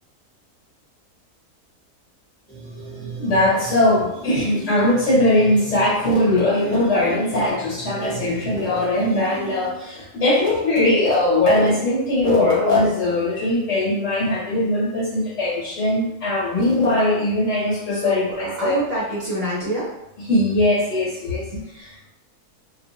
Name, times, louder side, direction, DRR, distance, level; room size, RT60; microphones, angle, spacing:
sound 1, 2.5-10.0, right 1 dB, 5° left, 0.8 m, -37 dB
voice 1, 3.2-18.8 20.2-21.5 21.7-22.1, left 1 dB, 55° left, -6 dB, 1.3 m, -20 dB
voice 2, 17.9-19.9 21.5-21.8, right 1 dB, 50° right, -8 dB, 0.9 m, -27 dB
2.7 x 2.3 x 2.6 m, 0.84 s
omnidirectional pair, 1.6 m